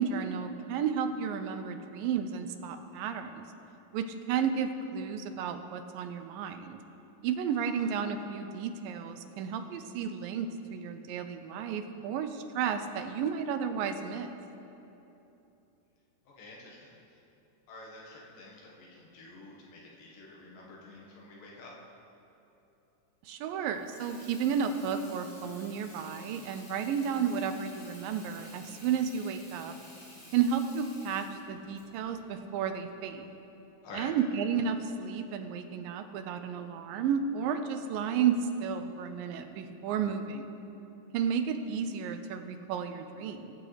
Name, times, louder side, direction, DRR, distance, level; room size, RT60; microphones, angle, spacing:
voice 1, 0.0-3.4 3.9-6.8 7.2-14.3 23.3-29.8 30.3-33.3 33.9-40.5 41.1-43.5, right 7 dB, 85° right, 8 dB, 2.3 m, -32 dB
voice 2, 16.2-17.0 17.7-21.8 33.8-34.1, left 2 dB, 75° left, -3 dB, 3.2 m, -49 dB
Water tap faucet / Sink (filling or washing), 23.6-33.2, left 1 dB, 20° left, 1.7 m, -53 dB
20.0 x 8.6 x 3.3 m, 2.9 s
omnidirectional pair, 4.0 m